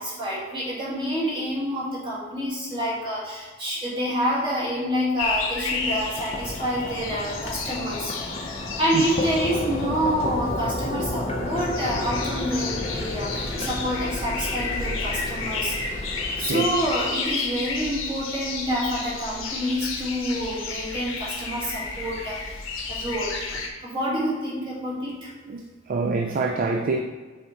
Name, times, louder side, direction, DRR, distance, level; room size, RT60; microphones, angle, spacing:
voice 1, 0.0-8.3 8.8-15.9 16.4-22.6 22.9-25.3, equal, 25° right, -7 dB, 1.9 m, -28 dB
sound 1, 5.2-23.7, left 4 dB, 65° left, 0.8 m, -32 dB
sound 2, 5.7-17.1, left 2 dB, 30° left, 0.6 m, -32 dB
voice 2, 16.4-16.7 25.5-25.6 25.9-27.0, right 3 dB, 40° right, 4 dB, 0.3 m, -25 dB
6.2 x 3.7 x 4.4 m, 1.3 s
head